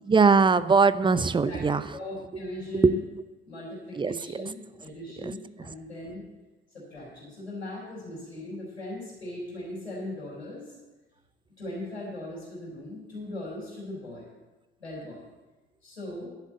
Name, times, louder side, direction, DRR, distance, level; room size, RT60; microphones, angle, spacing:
voice 1, 0.1-1.8 2.8-2.9 4.0-4.1 5.2-5.3, right 4 dB, 15° right, 15 dB, 0.5 m, -20 dB
voice 2, 1.9-3.0 3.4-6.2 6.7-10.7 11.6-14.2 14.8-15.2 15.8-16.3, left 1 dB, 85° left, -7 dB, 4.7 m, -39 dB
11.5 x 7.3 x 8.0 m, 1.2 s
figure-of-eight pair, 50°, 31 cm